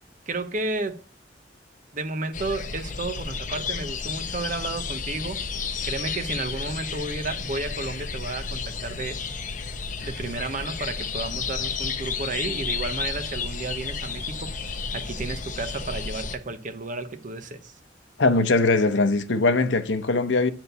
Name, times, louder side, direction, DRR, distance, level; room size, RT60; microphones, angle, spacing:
voice 1, 0.3-1.0 1.9-5.4 5.8-9.2 10.0-17.7, right 3 dB, 45° right, 0.9 m, -32 dB
sound 1, 2.3-16.4, left 5 dB, 45° left, 0.9 m, -32 dB
voice 2, 18.2-20.5, left 3 dB, 90° left, 0.8 m, -21 dB
9.6 x 4.5 x 6.7 m
head